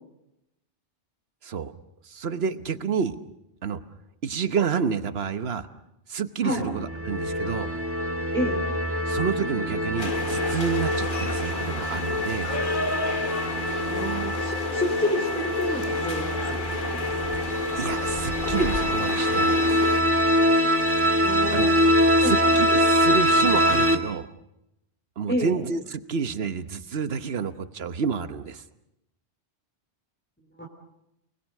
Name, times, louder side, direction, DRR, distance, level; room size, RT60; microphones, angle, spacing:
voice 1, 1.4-1.7 2.0-3.2 3.6-3.8 4.2-5.7 6.1-7.7 9.1-12.5 17.8-19.8 21.5-21.7 22.2-24.3 25.2-28.6, right 6 dB, 60° right, 11 dB, 1.3 m, -29 dB
sound 1, 6.6-24.0, equal, 10° right, 1.8 m, -24 dB
sound 2, 10.0-20.0, left 3 dB, 45° left, 1.4 m, -33 dB
voice 2, 13.9-16.6 16.9-17.3 21.2-21.8 22.2-22.3 25.3-25.5 30.6-30.7, equal, 10° left, -1 dB, 3.0 m, -29 dB
29.0 x 20.0 x 6.5 m, 0.85 s
omnidirectional pair, 1.2 m